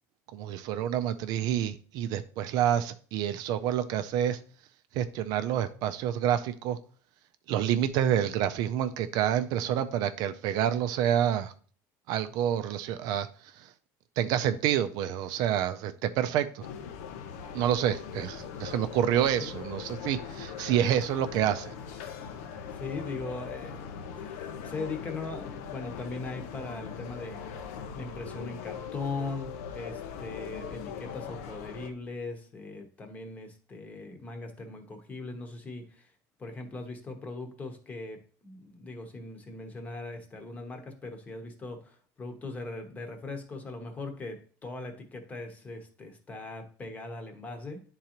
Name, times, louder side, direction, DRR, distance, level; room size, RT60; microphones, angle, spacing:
voice 1, 0.3-4.4 4.9-6.8 7.5-11.5 12.1-13.7 14.2-16.7 17.5-21.7, right 10 dB, 55° right, 0.4 m, -28 dB
sound 1, 16.6-31.9, left 7 dB, 85° left, 0.7 m, -41 dB
voice 2, 22.7-27.4 27.9-36.1 36.4-47.8, left 3 dB, 20° left, 0.9 m, -40 dB
10.5 x 3.8 x 2.9 m
cardioid pair, 160°, 8 cm